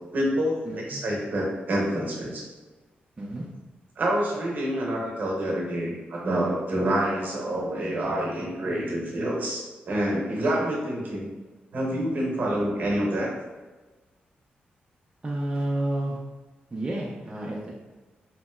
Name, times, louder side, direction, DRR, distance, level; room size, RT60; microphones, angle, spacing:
voice 1, 0.1-2.4 4.0-11.3 11.7-13.3, right 1 dB, 55° right, -3 dB, 0.8 m, -27 dB
voice 2, 0.6-1.0 3.2-3.5 15.2-16.2 16.7-17.7, right 1 dB, 25° right, -4 dB, 0.4 m, -30 dB
3.0 x 2.7 x 2.2 m, 1.2 s
wide cardioid pair, 125°, 4 cm